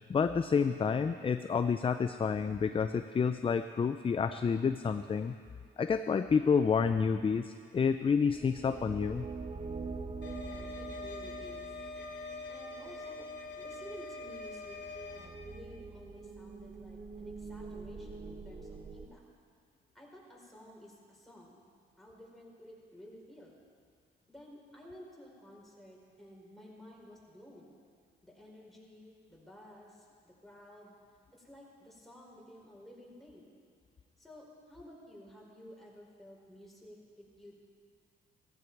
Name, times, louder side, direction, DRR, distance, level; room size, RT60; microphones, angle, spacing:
voice 1, 0.1-5.3 5.8-9.3, left 6 dB, 25° left, 9 dB, 0.5 m, -29 dB
sound 1, 8.0-19.1, right 4 dB, 30° right, 1.2 m, -45 dB
sound 2, 10.2-15.3, left 3 dB, 60° left, 2.6 m, -44 dB
voice 2, 10.4-11.7 12.1-13.3 13.6-14.8 15.1-19.3 19.9-21.7 22.0-23.6 24.3-27.8 28.2-31.0 31.3-33.5 34.2-37.5, equal, ahead, -4 dB, 4.5 m, -53 dB
15.5 x 15.0 x 4.7 m, 2.1 s
cardioid pair, 90°, 20 cm